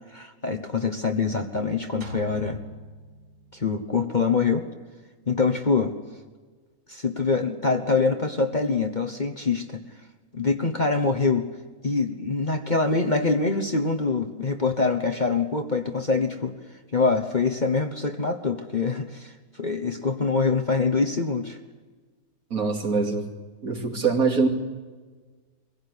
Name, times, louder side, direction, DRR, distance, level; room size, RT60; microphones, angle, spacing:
voice 1, 0.1-2.6 3.5-4.7 5.3-5.9 6.9-9.8 10.3-11.5 11.8-16.5 16.9-19.3 19.6-21.6, left 4 dB, 30° left, 6 dB, 1.2 m, -24 dB
sound 1, 2.0-3.9, equal, 85° right, 3.0 m, -40 dB
voice 2, 22.5-23.3 23.6-24.5, right 4 dB, 60° right, 2 dB, 3.2 m, -23 dB
23.5 x 16.5 x 9.9 m, 1.4 s
omnidirectional pair, 1.7 m